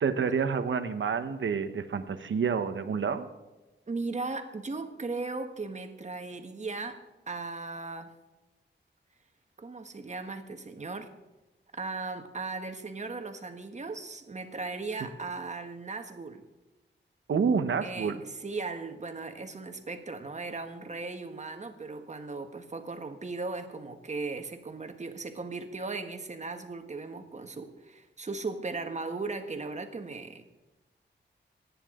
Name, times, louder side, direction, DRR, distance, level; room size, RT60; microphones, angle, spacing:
voice 1, 0.0-3.3 17.3-18.2, right 6 dB, 85° right, 9 dB, 1.1 m, -28 dB
voice 2, 3.9-7.0 7.3-8.2 9.6-11.1 11.7-16.4 17.8-30.4, right 3 dB, 35° right, 6 dB, 1.5 m, -37 dB
27.0 x 9.9 x 3.8 m, 1.1 s
wide cardioid pair, 130°, 19 cm